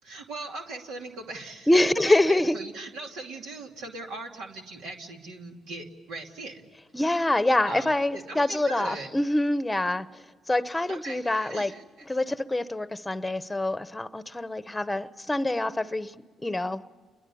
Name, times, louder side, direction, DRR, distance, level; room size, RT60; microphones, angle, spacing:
voice 1, 0.0-6.6 7.6-9.1 10.9-12.1, right 2 dB, 85° right, 2.6 m, -39 dB
voice 2, 1.7-2.5 6.9-10.1 10.5-11.7 12.1-16.1 16.4-16.8, left 1 dB, 10° left, 0.9 m, -25 dB
29.5 x 22.0 x 7.1 m
cardioid pair, 90°, 0 cm